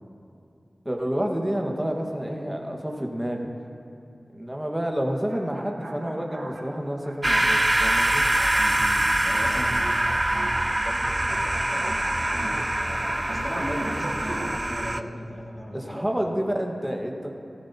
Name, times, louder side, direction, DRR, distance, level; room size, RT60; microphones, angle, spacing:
voice 1, 0.8-3.5 4.3-8.3 15.7-17.3, equal, 10° right, 1 dB, 1.6 m, -29 dB
sound 1, 5.2-14.6, right 1 dB, 75° right, 1.3 m, -39 dB
sound 2, 7.2-15.0, right 1 dB, 25° right, 0.4 m, -24 dB
voice 2, 8.6-10.0 10.3-10.4 10.8-16.1, equal, 10° left, -3 dB, 2.5 m, -37 dB
17.0 x 13.5 x 2.9 m, 2.6 s
cardioid pair, 45°, 0 cm